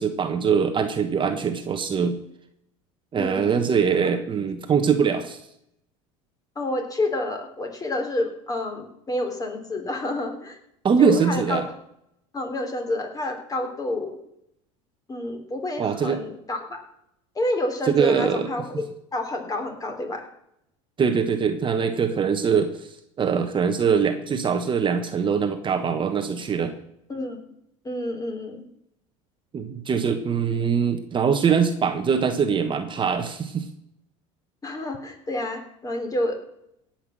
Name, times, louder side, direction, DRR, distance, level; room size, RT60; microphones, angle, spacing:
voice 1, 0.0-2.2 3.1-5.4 10.8-11.6 15.8-16.2 17.9-18.5 21.0-26.7 29.5-33.7, right 6 dB, 30° right, 7 dB, 1.3 m, -23 dB
voice 2, 3.2-3.6 6.5-10.6 11.0-11.6 12.3-14.2 15.1-16.8 17.3-18.8 19.1-20.3 27.1-27.4 27.8-28.6 34.6-36.4, left 1 dB, 20° left, 4 dB, 3.3 m, -29 dB
17.0 x 5.9 x 7.5 m, 0.78 s
supercardioid pair, 95°, 16 cm